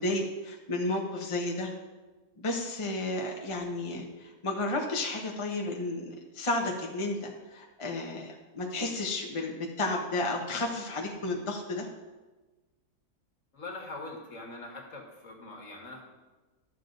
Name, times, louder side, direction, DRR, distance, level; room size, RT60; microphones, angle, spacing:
voice 1, 0.0-1.7 2.4-11.9, left 2 dB, 25° left, 0 dB, 1.0 m, -32 dB
voice 2, 13.5-16.0, left 2 dB, 55° left, 0 dB, 1.9 m, -42 dB
12.0 x 7.2 x 3.9 m, 1.2 s
omnidirectional pair, 1.7 m